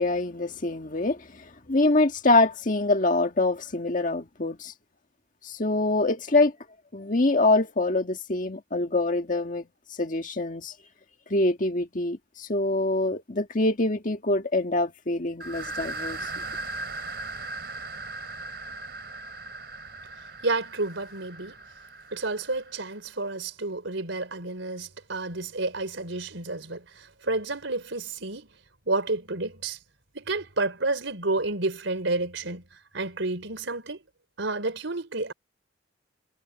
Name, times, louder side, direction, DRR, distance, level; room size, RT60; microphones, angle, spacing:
voice 1, 0.0-4.7 5.4-6.5 6.9-9.6 10.0-10.7 11.3-16.2, left 2 dB, 45° left, 1.7 m, -25 dB
sound 1, 15.4-22.9, right 2 dB, 55° right, 5.0 m, -38 dB
voice 2, 20.4-21.5 22.1-28.5 28.9-29.8 30.1-32.6 32.9-34.0 34.4-35.3, right 2 dB, 80° right, 4.2 m, -30 dB
head